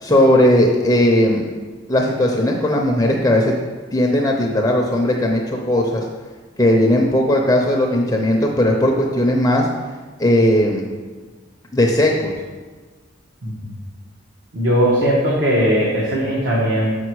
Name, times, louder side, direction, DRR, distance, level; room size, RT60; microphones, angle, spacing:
voice 1, 0.0-1.5 1.9-3.5 3.9-6.0 6.6-9.7 10.2-10.8 11.7-12.3, left 1 dB, 15° left, 0 dB, 0.6 m, -17 dB
voice 2, 13.4-13.7 14.5-16.9, equal, 65° right, -6 dB, 1.4 m, -18 dB
6.8 x 5.9 x 4.7 m, 1.4 s
head